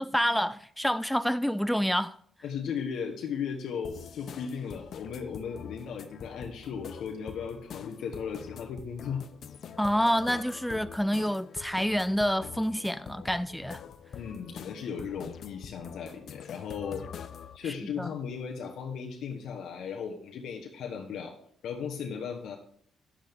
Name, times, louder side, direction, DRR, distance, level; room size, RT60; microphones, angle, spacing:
voice 1, 0.0-2.2 9.8-13.8 17.8-18.1, equal, ahead, 0.3 m, -28 dB
voice 2, 2.4-9.3 14.1-17.1 17.5-21.4 21.6-22.6, left 6 dB, 75° left, 1.1 m, -36 dB
sound 1, 3.8-17.6, left 7 dB, 60° left, 0.5 m, -45 dB
10.0 x 8.0 x 3.5 m
cardioid pair, 90°, 0 cm